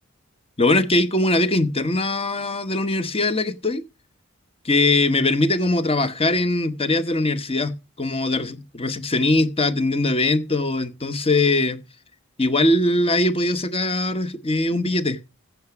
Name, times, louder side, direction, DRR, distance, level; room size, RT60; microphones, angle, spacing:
voice 1, 0.6-3.8 4.6-11.8 12.4-15.2, left 2 dB, 30° left, 1.1 m, -21 dB
15.0 x 6.0 x 5.8 m
head